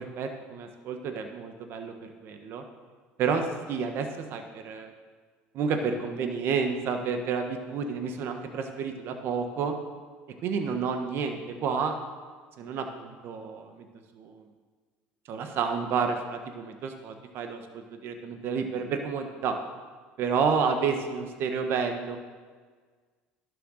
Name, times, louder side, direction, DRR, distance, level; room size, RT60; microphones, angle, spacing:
voice 1, 0.0-1.9 2.2-2.6 3.2-4.9 5.5-9.7 10.4-12.0 12.6-13.8 14.2-14.4 15.3-19.5 20.2-22.2, right 5 dB, 55° right, 5 dB, 1.3 m, -30 dB
11.0 x 6.8 x 6.5 m, 1.5 s
supercardioid pair, 95°, 5 cm